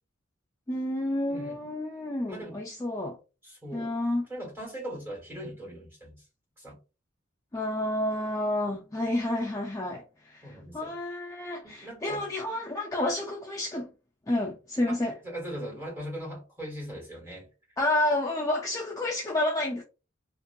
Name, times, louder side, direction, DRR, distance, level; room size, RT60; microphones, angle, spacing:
voice 1, 0.7-3.2 3.7-4.2 7.5-13.9 14.3-15.1 17.8-19.8, left 1 dB, 15° left, 0.3 m, -30 dB
voice 2, 1.3-1.7 2.3-2.6 3.4-3.9 4.3-6.2 6.6-6.8 10.4-11.0 11.6-12.2 14.9-17.5, equal, 10° right, 1.2 m, -40 dB
2.7 x 2.5 x 2.2 m
head